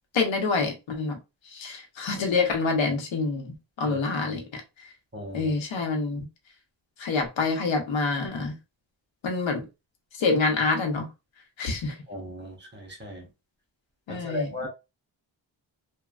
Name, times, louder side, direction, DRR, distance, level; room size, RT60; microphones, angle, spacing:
voice 1, 0.1-1.2 1.5-4.6 5.3-6.3 7.0-8.6 9.2-9.6 10.2-11.1 11.6-12.0 14.1-14.5, left 4 dB, 85° left, 0.9 m, -26 dB
voice 2, 5.1-5.5 12.1-13.3 14.1-14.7, left 1 dB, 25° right, 0.8 m, -36 dB
3.1 x 2.2 x 2.3 m
wide cardioid pair, 145°, 45 cm